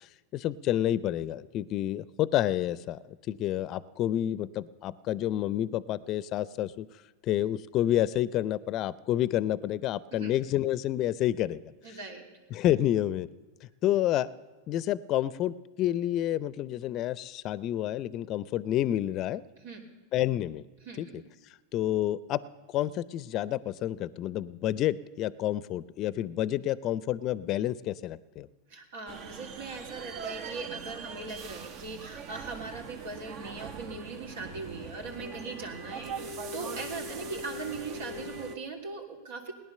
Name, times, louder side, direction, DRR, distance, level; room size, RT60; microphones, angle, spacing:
voice 1, 0.3-3.0 3.3-6.9 7.2-11.6 12.5-13.3 13.8-14.3 14.7-19.4 20.1-20.7 21.0-21.1 21.7-22.4 22.7-28.5, left 12 dB, 40° left, 19 dB, 0.5 m, -29 dB
voice 2, 11.8-12.3 19.6-19.8 20.8-21.2 28.7-39.5, right 4 dB, 80° right, 2 dB, 3.1 m, -40 dB
sound 1, 29.1-38.6, right 3 dB, 50° right, 1.1 m, -41 dB
18.5 x 10.5 x 6.7 m, 1.3 s
hypercardioid pair, 110°, 0 cm